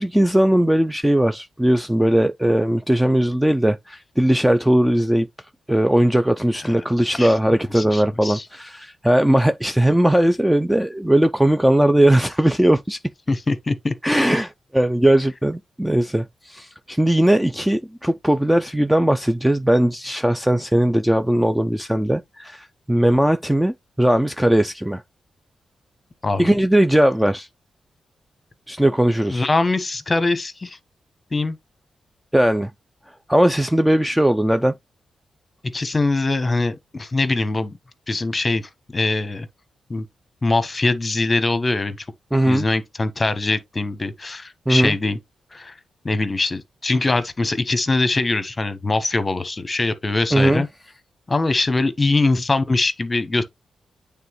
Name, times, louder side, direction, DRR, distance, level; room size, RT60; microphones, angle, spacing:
voice 1, 0.0-5.3 5.7-13.0 14.0-25.0 26.4-27.5 28.7-29.5 32.3-32.7 33.3-34.7 42.3-42.7 44.7-45.0 50.3-50.6, right 1 dB, 5° right, 0.4 m, -18 dB
voice 2, 7.7-8.5 13.3-13.9 26.2-26.5 29.3-30.8 31.3-31.6 35.7-37.8 38.1-39.5 39.9-40.0 40.4-42.1 42.5-45.2 45.5-45.7 46.0-50.7 51.3-53.4, left 2 dB, 25° left, 1.0 m, -22 dB
9.1 x 3.5 x 3.0 m
wide cardioid pair, 120°, 0 cm